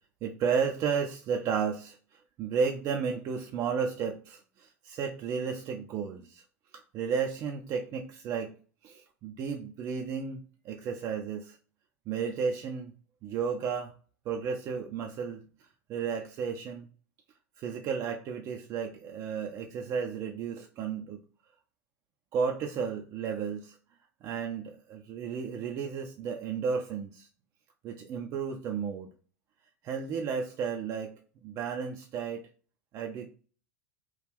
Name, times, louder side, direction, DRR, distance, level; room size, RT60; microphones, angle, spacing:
voice 1, 0.2-6.4 6.9-8.5 8.8-11.6 12.1-12.9 13.2-13.9 14.3-15.4 15.9-16.9 17.6-21.2 22.3-23.8 24.2-27.3 27.8-29.1 29.8-31.1 31.4-32.4 32.9-33.3, right 6 dB, 40° right, 3 dB, 0.4 m, -33 dB
3.0 x 2.3 x 3.5 m, 0.40 s
hypercardioid pair, 90°, 9 cm